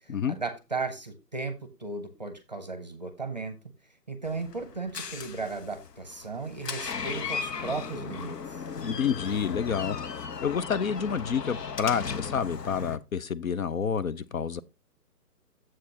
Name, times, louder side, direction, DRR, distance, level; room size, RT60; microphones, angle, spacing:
voice 1, 0.3-3.6 4.1-8.6, right 3 dB, 30° right, 0.7 m, -35 dB
Door, 4.2-13.0, left 6 dB, 80° left, 1.0 m, -37 dB
voice 2, 8.8-10.0 10.4-14.6, left 7 dB, 60° left, 0.5 m, -29 dB
8.3 x 7.5 x 2.8 m
hypercardioid pair, 170°, 48 cm